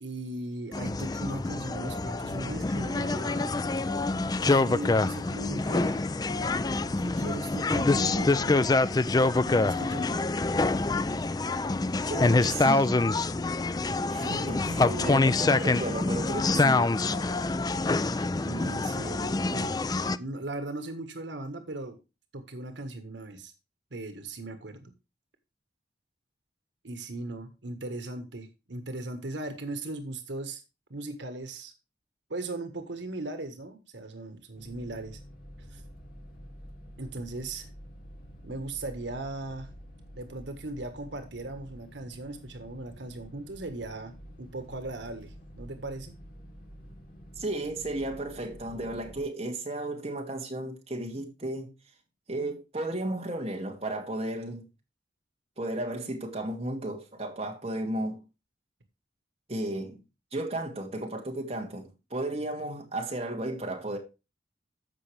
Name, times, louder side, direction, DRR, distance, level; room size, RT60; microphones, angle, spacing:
voice 1, 0.0-3.5 4.4-6.1 7.0-8.8 9.4-10.1 14.2-15.3 18.4-19.8 20.1-22.0 22.3-23.5 23.9-24.9 26.8-30.6 30.9-31.7 32.3-35.2 35.7-35.8 37.0-37.7 38.4-39.7 40.1-46.2, right 2 dB, 90° right, 1.5 m, -38 dB
sound 1, 0.7-20.2, left 3 dB, 20° left, 0.4 m, -26 dB
voice 2, 12.1-13.0 14.1-16.9 47.4-51.7 52.3-54.6 55.6-58.2 59.5-60.0 60.3-64.0, right 1 dB, 35° right, 2.4 m, -34 dB
sound 2, 34.6-49.2, equal, 50° left, 2.5 m, -48 dB
14.5 x 5.5 x 3.3 m
head